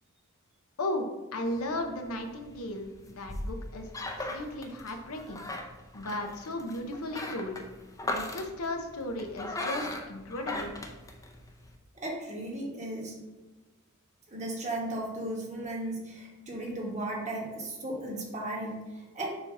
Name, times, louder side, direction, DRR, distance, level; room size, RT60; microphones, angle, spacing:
voice 1, 0.8-5.4 5.9-7.6 8.1-10.7, left 1 dB, 80° left, 5 dB, 0.9 m, -35 dB
sound 1, 1.5-11.7, left 2 dB, 15° left, 0.6 m, -39 dB
voice 2, 11.9-13.1 14.3-19.4, right 1 dB, 35° right, -2 dB, 1.5 m, -36 dB
6.9 x 2.8 x 5.4 m, 1.1 s
head